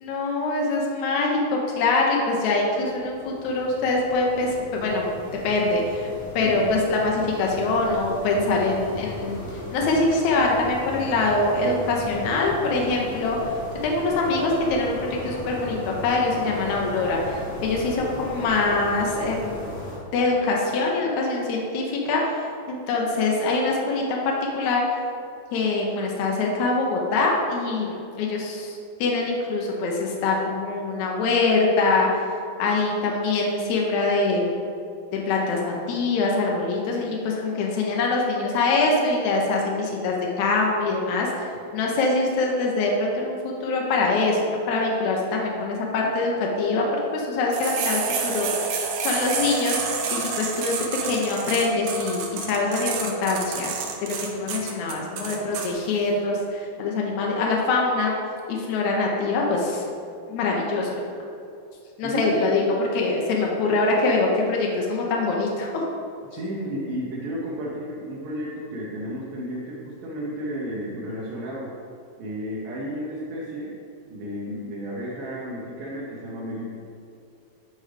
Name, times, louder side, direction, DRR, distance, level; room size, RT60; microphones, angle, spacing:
voice 1, 0.0-5.1 5.4-6.1 6.3-13.4 13.8-19.7 20.1-24.8 25.5-32.1 32.6-34.6 35.1-41.3 41.7-46.8 47.1-48.7 49.0-50.8 51.0-53.7 54.0-58.1 58.5-59.8 60.3-61.0 62.0-65.8, left 3 dB, 85° left, -1 dB, 1.6 m, -24 dB
sound 1, 2.5-20.0, left 1 dB, 40° left, 0.8 m, -37 dB
sound 2, 47.5-55.7, right 6 dB, 90° right, 1.6 m, -29 dB
voice 2, 62.0-62.4 66.3-71.7 72.2-73.7 74.1-76.7, equal, 70° right, -6 dB, 2.3 m, -32 dB
9.7 x 4.9 x 3.3 m, 2.5 s
omnidirectional pair, 4.4 m